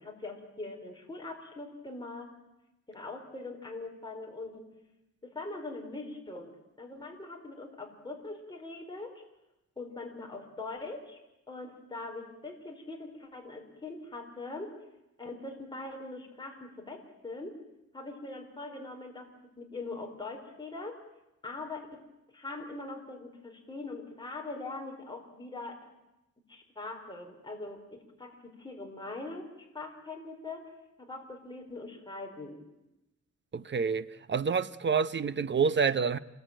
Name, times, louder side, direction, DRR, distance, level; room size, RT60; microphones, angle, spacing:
voice 1, 0.0-2.3 2.9-4.7 5.2-9.2 9.8-11.2 11.5-14.7 15.2-17.6 17.9-19.3 19.6-21.0 21.4-22.0 22.3-25.8 26.5-29.5 29.7-30.7 31.1-32.6, left 2 dB, 15° left, 4.6 m, -42 dB
voice 2, 33.5-36.2, right 6 dB, 40° right, 0.9 m, -28 dB
27.0 x 22.0 x 9.0 m
wide cardioid pair, 135°, 30 cm